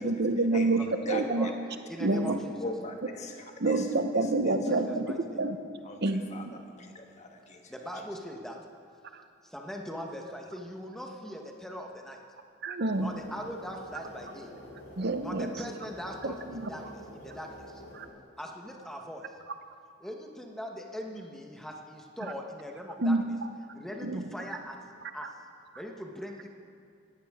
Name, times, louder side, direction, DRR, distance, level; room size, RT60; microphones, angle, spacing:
voice 1, 0.0-1.5 2.0-2.4 3.6-5.0 5.4-5.6 6.0-6.2 12.6-13.1 15.0-15.5 16.2-16.6 18.0-18.1 23.0-23.2 24.0-24.2, right 2 dB, 55° right, 8 dB, 0.8 m, -27 dB
voice 2, 0.5-1.5 2.1-2.3 2.6-3.9 4.2-4.7 5.8-7.7, left 2 dB, 35° left, 3 dB, 1.3 m, -41 dB
voice 3, 1.0-1.5 1.9-2.6 4.5-5.4 7.7-8.6 9.4-12.2 13.0-14.5 15.2-17.8 18.4-19.2 20.0-23.4 23.7-24.8 25.1-25.3 25.7-26.5, equal, ahead, 1 dB, 1.1 m, -41 dB
sound 1, 12.8-18.1, left 1 dB, 85° left, 3.2 m, -48 dB
17.5 x 15.5 x 3.6 m, 2.4 s
head